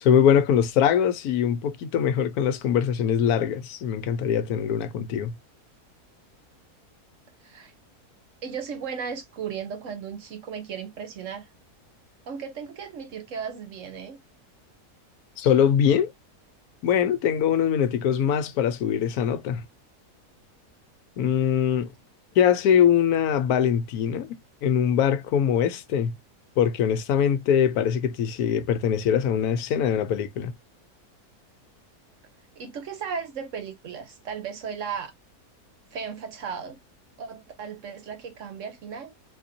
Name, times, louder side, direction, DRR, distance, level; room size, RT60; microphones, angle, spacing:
voice 1, 0.0-5.3 15.4-16.1 16.8-19.6 21.2-21.9 22.4-24.3 24.6-26.1 26.6-30.5, left 8 dB, 75° left, 1.1 m, -22 dB
voice 2, 7.4-7.7 8.4-11.5 12.3-14.2 32.6-35.1 35.9-36.8 37.2-39.1, right 6 dB, 60° right, 1.0 m, -35 dB
4.0 x 2.6 x 2.5 m
omnidirectional pair, 1.6 m